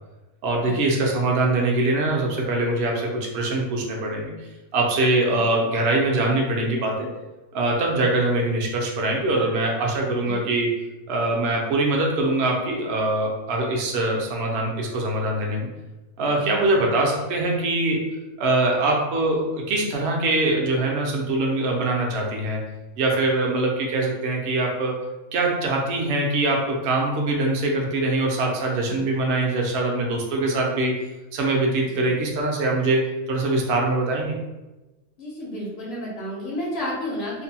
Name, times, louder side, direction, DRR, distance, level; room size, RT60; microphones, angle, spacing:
voice 1, 0.4-4.3 4.7-7.1 7.5-10.7 11.1-15.7 16.2-18.0 18.4-22.6 23.0-31.0 31.3-34.4, right 2 dB, 65° right, 0 dB, 0.6 m, -23 dB
voice 2, 35.2-37.4, equal, 55° left, -5 dB, 0.6 m, -32 dB
2.6 x 2.1 x 2.7 m, 1.1 s
omnidirectional pair, 1.6 m